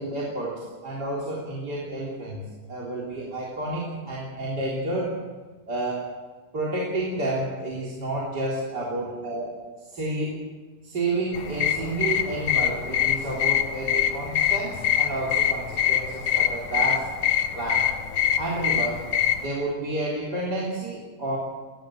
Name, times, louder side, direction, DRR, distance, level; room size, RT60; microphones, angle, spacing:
voice 1, 0.0-2.4 2.7-5.2 5.7-6.0 6.5-10.4 10.8-17.1 17.5-17.9 18.4-19.0 19.4-21.4, right 2 dB, 25° right, -3 dB, 3.9 m, -30 dB
sound 1, 11.3-19.5, left 10 dB, 90° left, 1.1 m, -24 dB
21.0 x 17.5 x 7.7 m, 1.4 s
omnidirectional pair, 4.3 m